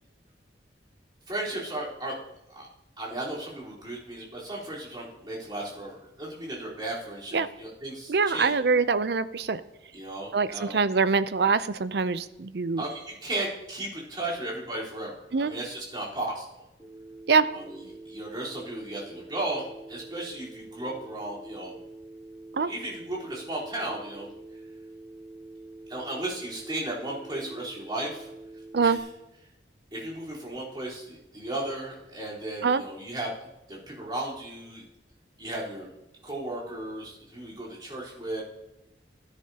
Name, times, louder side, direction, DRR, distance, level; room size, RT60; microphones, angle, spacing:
voice 1, 1.3-2.2 2.5-2.7 3.0-8.5 9.9-10.8 12.8-16.6 17.5-21.7 22.6-24.3 25.9-28.3 28.8-29.0 29.9-33.3 33.7-34.8 35.4-35.9 36.2-38.4, right 1 dB, 25° right, -7 dB, 3.9 m, -35 dB
voice 2, 8.1-9.6 10.3-12.8 15.3-15.5 17.3-17.5 22.5-22.7 28.7-29.0 32.6-32.8, right 5 dB, 65° right, 14 dB, 0.5 m, -24 dB
Telephone, 16.8-29.0, right 2 dB, 5° right, 2.5 m, -46 dB
16.0 x 10.5 x 2.9 m, 0.91 s
head